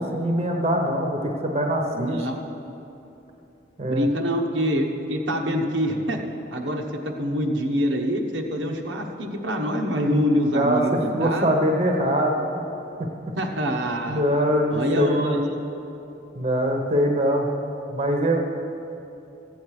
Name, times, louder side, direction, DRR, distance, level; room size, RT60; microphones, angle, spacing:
voice 1, 0.0-2.2 3.8-4.1 10.0-12.4 14.1-15.4 16.3-17.6 17.9-18.4, equal, 35° right, 2 dB, 0.9 m, -23 dB
voice 2, 1.9-2.4 3.9-6.2 6.5-6.8 7.2-11.5 13.4-14.2 14.7-15.5, equal, 85° right, 1 dB, 1.1 m, -25 dB
15.0 x 8.7 x 4.8 m, 2.9 s
head